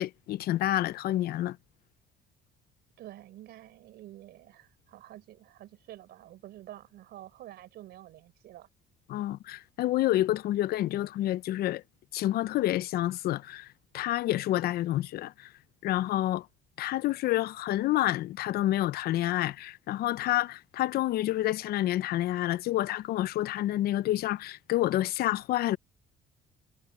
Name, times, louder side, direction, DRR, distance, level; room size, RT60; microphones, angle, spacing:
voice 1, 0.0-1.6 9.1-11.8 12.1-13.7 13.9-15.5 15.8-16.5 16.8-25.8, left 14 dB, 65° left, 0.6 m, -28 dB
voice 2, 3.0-8.7, right 14 dB, 75° right, 3.9 m, -49 dB
cardioid pair, 110°, 17 cm